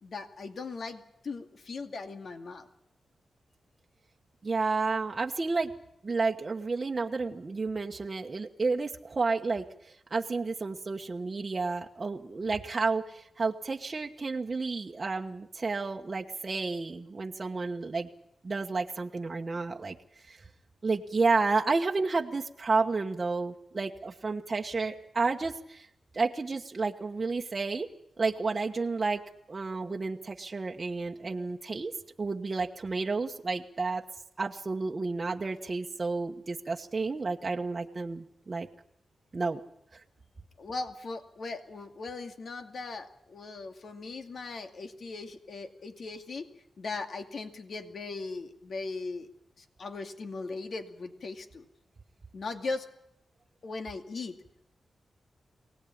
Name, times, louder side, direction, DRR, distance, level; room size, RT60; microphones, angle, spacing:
voice 1, 0.0-2.7 40.6-46.5 46.8-49.3 49.6-51.6 52.3-52.9 53.6-54.3, left 3 dB, 60° left, 5 dB, 2.3 m, -39 dB
voice 2, 4.4-5.7 6.0-18.1 18.4-19.9 20.3-20.4 20.8-25.9 26.1-27.9 28.2-29.2 29.5-31.9 32.2-34.0 34.4-38.7 39.3-39.6, right 4 dB, 35° right, 1 dB, 1.2 m, -31 dB
24.0 x 18.5 x 8.7 m, 0.77 s
cardioid pair, 90°, 0 cm